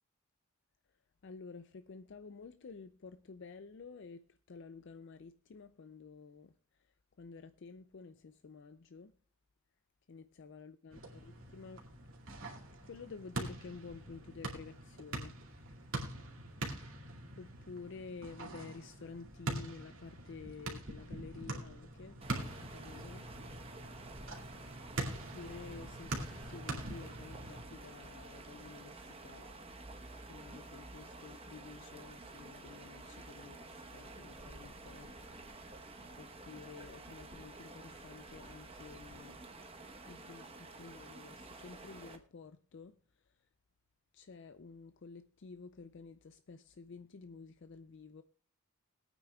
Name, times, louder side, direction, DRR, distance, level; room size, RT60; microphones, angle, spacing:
voice 1, 1.2-6.5 7.2-9.1 10.1-11.8 12.9-15.3 16.8-16.9 17.4-23.2 25.4-29.5 30.3-35.1 36.2-39.4 40.1-42.9 44.1-48.2, left 4 dB, 55° left, 0.4 m, -51 dB
sound 1, 10.9-27.6, right 1 dB, 65° right, 2.3 m, -44 dB
sound 2, 22.2-42.2, right 2 dB, 25° right, 1.0 m, -51 dB
21.5 x 9.0 x 2.3 m
head